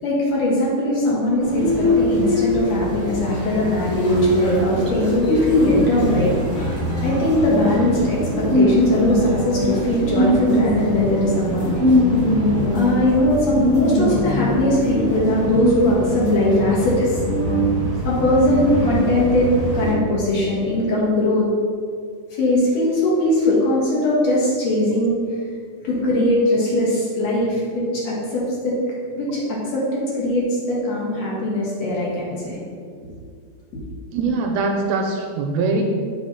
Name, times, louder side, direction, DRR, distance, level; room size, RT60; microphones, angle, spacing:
voice 1, 0.0-6.3 7.0-11.9 12.7-17.2 17.9-21.5 22.3-25.2 25.8-28.8 29.1-32.6, left 1 dB, 65° left, -5 dB, 2.9 m, -20 dB
sound 1, 1.4-19.9, left 1 dB, 45° left, 2.7 m, -22 dB
voice 2, 34.1-35.8, right 3 dB, 80° right, 2 dB, 1.7 m, -22 dB
7.3 x 3.9 x 5.6 m, 2.1 s
omnidirectional pair, 3.4 m